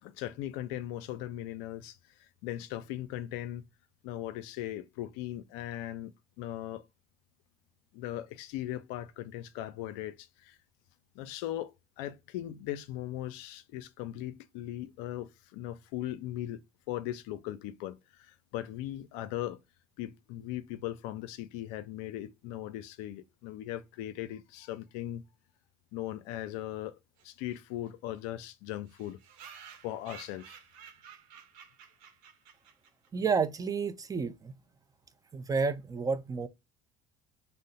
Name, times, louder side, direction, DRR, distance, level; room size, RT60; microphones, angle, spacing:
voice 1, 0.0-3.7 4.0-6.9 7.9-10.6 11.1-16.6 16.9-19.6 20.0-25.2 25.9-27.0 27.2-29.2 29.8-30.6, left 13 dB, 70° left, 0.4 m, -39 dB
sound 1, 27.2-27.3 27.5-27.6 27.9-28.0 28.2-28.3 28.9-33.1, right 7 dB, 75° right, 1.0 m, -52 dB
voice 2, 33.1-34.5 35.3-36.5, right 5 dB, 20° right, 0.5 m, -30 dB
2.7 x 2.1 x 3.9 m
hypercardioid pair, 80°, 18 cm